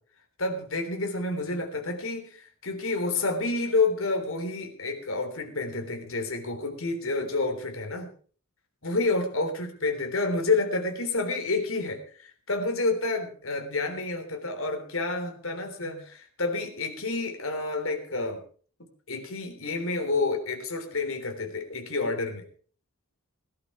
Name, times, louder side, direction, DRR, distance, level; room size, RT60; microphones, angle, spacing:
voice 1, 0.4-8.1 8.8-18.4 19.1-22.4, left 3 dB, 65° left, 4 dB, 3.6 m, -29 dB
18.0 x 11.5 x 4.9 m, 0.43 s
head